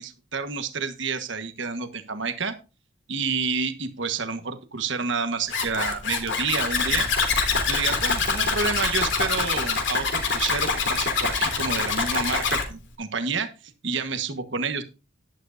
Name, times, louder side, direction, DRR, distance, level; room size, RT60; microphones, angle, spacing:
voice 1, 0.0-2.6 3.1-7.1 7.7-13.5 13.8-14.8, right 5 dB, 60° right, 8 dB, 1.4 m, -29 dB
Zipper (clothing), 5.5-12.6, left 5 dB, 60° left, 3.4 m, -25 dB
11.5 x 11.5 x 2.6 m, 0.30 s
head